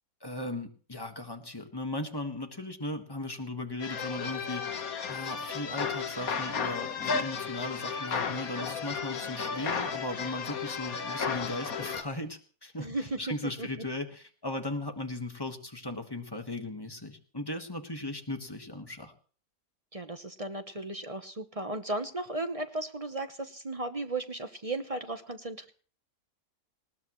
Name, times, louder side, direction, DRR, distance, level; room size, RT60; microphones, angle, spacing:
voice 1, 0.2-4.6 5.1-19.1, left 1 dB, 15° left, 5 dB, 1.5 m, -37 dB
sound 1, 3.8-12.0, left 6 dB, 60° left, 1.7 m, -34 dB
voice 2, 12.8-13.2 13.6-13.7 19.9-25.7, right 2 dB, 25° right, 8 dB, 0.8 m, -35 dB
20.0 x 18.5 x 3.1 m, 0.42 s
omnidirectional pair, 1.7 m